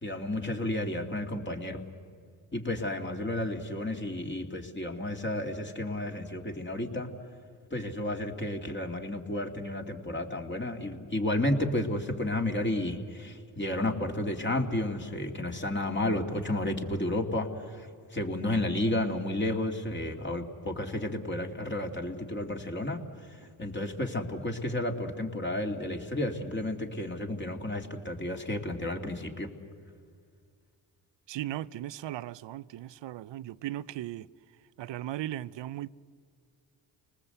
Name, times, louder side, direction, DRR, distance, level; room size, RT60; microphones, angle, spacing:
voice 1, 0.0-1.8 2.5-7.1 7.7-29.5, left 1 dB, 25° left, 2.9 m, -32 dB
voice 2, 31.3-34.3 34.8-35.9, right 13 dB, 65° right, 0.7 m, -37 dB
29.5 x 19.5 x 8.1 m
supercardioid pair, 60°, 46 cm